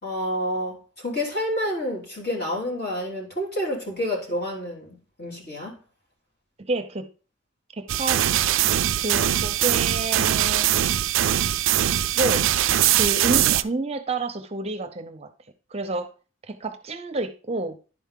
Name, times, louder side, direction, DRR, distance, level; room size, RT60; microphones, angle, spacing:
voice 1, 0.0-5.7, equal, 50° left, 3.4 m, -29 dB
voice 2, 6.6-7.1 7.7-8.2 9.0-10.7 12.1-15.3 15.7-16.1 16.5-17.8, right 2 dB, 30° right, 0.6 m, -29 dB
sound 1, 7.9-13.6, right 12 dB, 70° right, 0.4 m, -21 dB
11.0 x 4.6 x 3.7 m
head